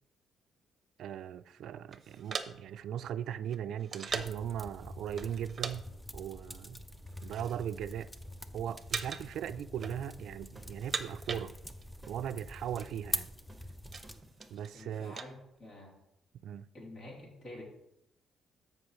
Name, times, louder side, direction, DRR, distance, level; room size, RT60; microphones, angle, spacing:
voice 1, 1.0-5.9 6.1-6.8 7.2-8.1 8.5-11.5 12.0-13.3 14.5-15.2 16.4-16.7, right 9 dB, 75° right, 0.3 m, -38 dB
sound 1, 1.9-4.5 5.2-5.8 6.0-6.2 6.9-7.7 8.0-8.4 8.9-9.4 9.7-10.3 10.7-12.0 12.2-12.3 12.5-12.9 13.4-15.3, right 5 dB, 45° right, 0.7 m, -40 dB
sound 2, 4.1-14.2, equal, 5° left, 0.6 m, -45 dB
sound 3, 8.7-14.5, right 2 dB, 15° right, 1.3 m, -59 dB
voice 2, 14.7-16.0 16.7-17.6, left 1 dB, 50° left, 3.0 m, -48 dB
13.0 x 5.4 x 3.1 m
cardioid pair, 90°, 0 cm